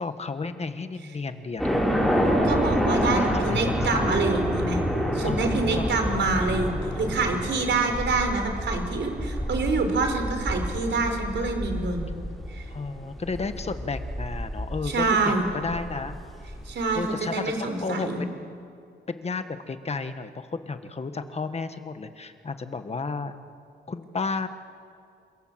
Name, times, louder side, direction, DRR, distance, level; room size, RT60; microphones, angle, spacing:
voice 1, 0.0-2.1 3.1-4.3 5.2-6.3 12.7-16.2 16.9-18.5 19.1-23.3 23.9-24.5, left 4 dB, 35° left, 9 dB, 1.5 m, -33 dB
sound 1, 1.6-16.7, equal, ahead, 6.8 m, -28 dB
voice 2, 2.4-4.8 5.1-12.1 12.5-12.7 14.8-15.5 16.6-18.2, right 3 dB, 70° right, 5 dB, 4.8 m, -26 dB
28.5 x 26.5 x 7.7 m, 2.4 s
wide cardioid pair, 130°, 20 cm